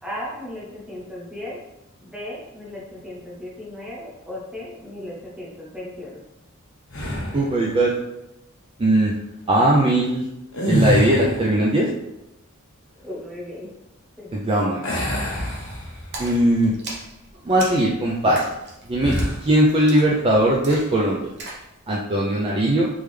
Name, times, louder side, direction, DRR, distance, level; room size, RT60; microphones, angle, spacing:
voice 1, 0.0-1.6 2.0-6.2 12.9-13.7 14.2-14.3, left 1 dB, 5° right, -5 dB, 1.0 m, -36 dB
sound 1, 6.9-7.5 10.5-11.6 14.8-16.3 16.7-16.9 19.0-19.5, equal, 65° left, 1.2 m, -25 dB
voice 2, 7.3-8.0 8.8-9.1 9.5-10.3 10.7-11.9 14.3-15.0 16.2-16.7 17.4-18.5 18.8-19.1 19.4-21.3 21.9-22.9, right 1 dB, 25° right, -3 dB, 0.4 m, -19 dB
Splash splatter, 16.1-21.7, right 2 dB, 55° right, 0.9 m, -38 dB
3.6 x 3.2 x 3.2 m, 0.90 s
head